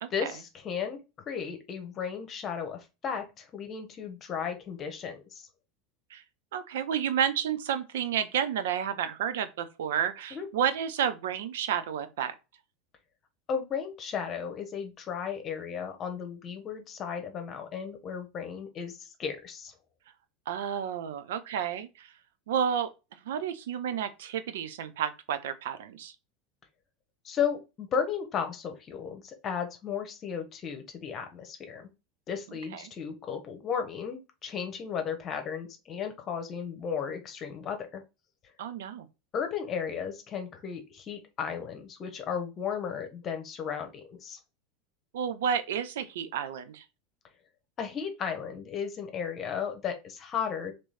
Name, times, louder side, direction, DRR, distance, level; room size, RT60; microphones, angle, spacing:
voice 1, 0.1-1.0 1.3-5.5 10.3-10.5 13.5-19.7 27.2-31.9 32.3-38.0 39.3-44.4 47.8-50.7, left 7 dB, 40° left, 0.9 m, -34 dB
voice 2, 6.5-12.3 20.5-22.1 22.5-22.9 23.3-26.1 32.7-32.8 38.6-39.1 45.1-46.8, right 8 dB, 70° right, 0.5 m, -31 dB
3.1 x 3.0 x 4.1 m
hypercardioid pair, 85°, 0 cm